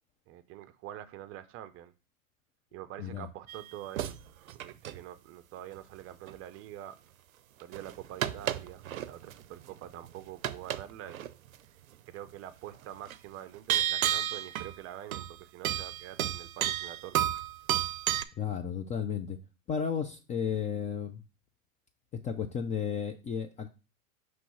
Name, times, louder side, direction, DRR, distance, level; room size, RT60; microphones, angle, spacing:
voice 1, 0.3-1.9 2.7-4.2 4.5-7.0 7.6-11.3 12.1-17.3, right 12 dB, 35° right, 0.6 m, -45 dB
sound 1, 3.5-4.2 4.5-5.0 6.3-6.4 7.7-9.3 9.6-10.1 10.4-10.8 11.1-11.3 13.1-13.2 13.7-14.8 15.1-15.4 15.6-18.2, right 11 dB, 85° right, 0.5 m, -31 dB
voice 2, 18.4-19.4 19.7-21.2 22.2-23.7, left 7 dB, 20° left, 0.4 m, -33 dB
5.9 x 3.2 x 5.6 m
hypercardioid pair, 100°, 41 cm